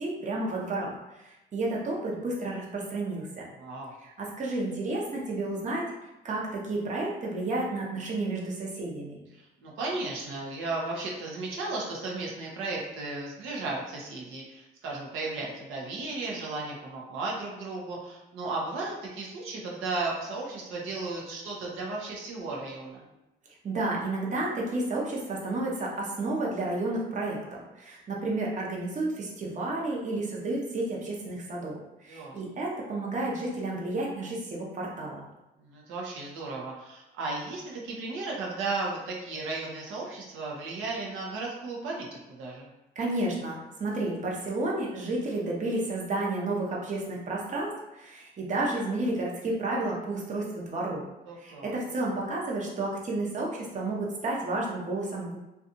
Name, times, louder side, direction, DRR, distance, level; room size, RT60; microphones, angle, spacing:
voice 1, 0.0-3.5 4.0-5.8 6.2-9.2 23.6-35.2 43.0-51.0 51.3-55.4, right 2 dB, 40° right, -3 dB, 0.7 m, -31 dB
voice 2, 3.6-3.9 9.3-23.0 32.1-32.4 35.6-42.7 51.3-51.7, right 3 dB, 90° right, -2 dB, 0.7 m, -35 dB
2.6 x 2.3 x 2.6 m, 0.96 s
cardioid pair, 90°, 20 cm